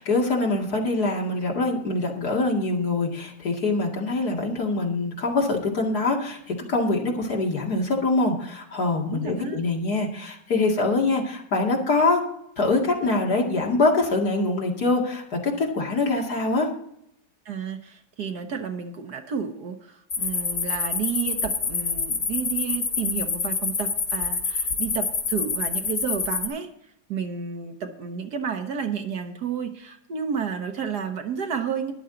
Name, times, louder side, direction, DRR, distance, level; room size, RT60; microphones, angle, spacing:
voice 1, 0.0-12.2 12.6-16.7, left 2 dB, 60° left, 0 dB, 2.7 m, -24 dB
voice 2, 9.1-9.6 17.4-26.7 27.1-31.9, right 7 dB, 65° right, 6 dB, 1.7 m, -31 dB
sound 1, 20.1-26.5, left 5 dB, 75° left, 2.6 m, -27 dB
13.5 x 11.0 x 3.9 m, 0.74 s
omnidirectional pair, 1.9 m